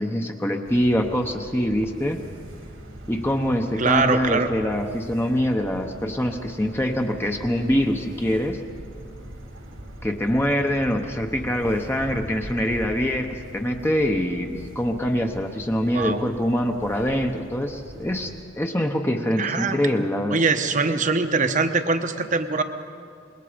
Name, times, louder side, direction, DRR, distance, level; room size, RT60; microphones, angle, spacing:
voice 1, 0.0-2.2 3.1-8.6 10.0-20.4, equal, 10° left, 3 dB, 0.9 m, -24 dB
sound 1, 0.6-18.4, right 1 dB, 90° right, 3.3 m, -41 dB
voice 2, 3.8-4.5 15.9-16.2 19.4-19.8 20.3-22.6, right 4 dB, 40° right, 8 dB, 1.0 m, -22 dB
26.0 x 21.5 x 5.1 m, 2.4 s
head